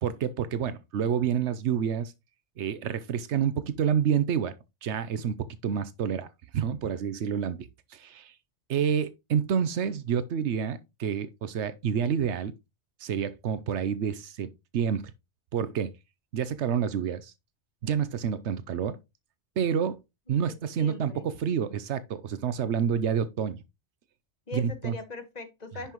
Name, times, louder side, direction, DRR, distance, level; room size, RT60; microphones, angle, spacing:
voice 1, 0.0-2.1 2.6-4.6 4.8-6.3 6.5-8.4 8.7-12.5 13.0-15.1 15.5-15.9 16.3-17.3 17.8-19.0 19.6-20.0 20.3-23.6 24.5-24.9, right 8 dB, 90° right, 1.0 m, -28 dB
voice 2, 20.7-21.2 24.5-25.9, left 3 dB, 40° left, 1.5 m, -40 dB
10.0 x 5.7 x 3.0 m
omnidirectional pair, 1.1 m